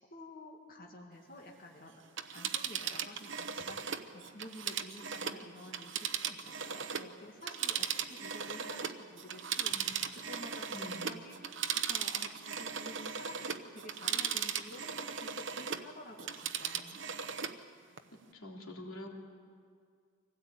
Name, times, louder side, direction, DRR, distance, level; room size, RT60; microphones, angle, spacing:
voice 1, 0.1-2.0 2.3-17.0, left 1 dB, 45° left, 0 dB, 2.0 m, -51 dB
Telephone, 2.0-7.1 7.4-15.9 16.2-17.6 18.0-18.1, right 8 dB, 60° right, 1.0 m, -37 dB
voice 2, 9.7-10.1 10.7-11.2 18.1-19.1, left 1 dB, 85° left, 0 dB, 3.3 m, -47 dB
24.5 x 17.0 x 9.1 m, 2.1 s
head